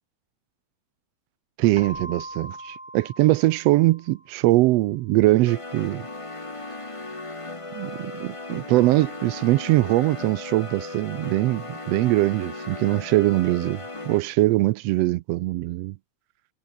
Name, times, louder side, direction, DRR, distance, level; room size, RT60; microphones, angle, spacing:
voice 1, 1.6-6.0 7.7-13.8 14.0-15.9, right 18 dB, 90° right, 1.4 m, -22 dB
Keyboard (musical), 1.7-4.5, right 1 dB, 10° right, 2.7 m, -41 dB
sound 1, 5.4-14.2, left 2 dB, 20° left, 0.8 m, -37 dB
omnidirectional pair, 3.5 m